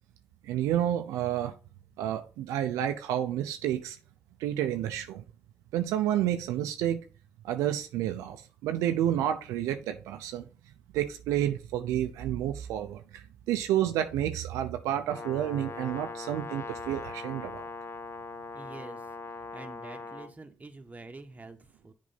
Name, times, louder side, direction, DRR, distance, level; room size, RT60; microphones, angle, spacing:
voice 1, 0.4-1.5 2.0-4.0 4.4-5.2 5.7-7.0 7.4-10.5 10.9-17.7, right 11 dB, 90° right, 0.6 m, -30 dB
Brass instrument, 15.1-20.3, left 3 dB, 50° left, 1.0 m, -40 dB
voice 2, 18.5-19.1 19.4-21.9, right 3 dB, 30° right, 1.5 m, -47 dB
7.4 x 4.7 x 4.0 m
supercardioid pair, 45°, 5 cm